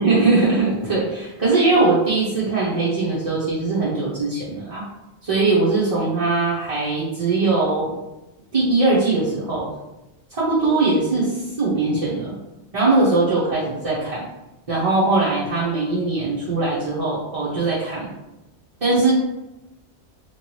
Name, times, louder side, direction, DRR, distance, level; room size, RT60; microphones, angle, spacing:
voice 1, 0.0-4.8 5.2-7.9 8.5-9.7 10.3-12.3 12.7-14.2 14.7-18.1 18.8-19.1, right 3 dB, 40° right, -8 dB, 0.6 m, -20 dB
2.9 x 2.9 x 2.9 m, 1.0 s
omnidirectional pair, 1.2 m